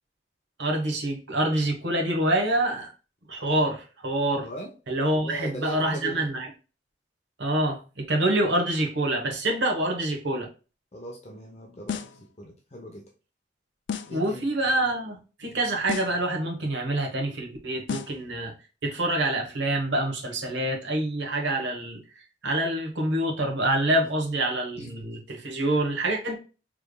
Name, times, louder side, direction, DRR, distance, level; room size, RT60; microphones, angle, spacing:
voice 1, 0.6-2.9 3.3-4.5 4.9-6.5 7.4-10.5 14.1-18.5 18.8-22.0 22.4-26.4, right 1 dB, 70° right, 1 dB, 1.1 m, -26 dB
voice 2, 4.3-4.7 5.2-6.2 10.9-13.0 14.1-14.5 24.8-24.9, right 1 dB, 35° left, 0 dB, 0.7 m, -39 dB
sound 1, 11.9-12.3 13.9-14.3 15.9-16.3 17.9-18.3, left 7 dB, 75° left, 0.4 m, -33 dB
5.0 x 3.3 x 2.2 m, 0.33 s
head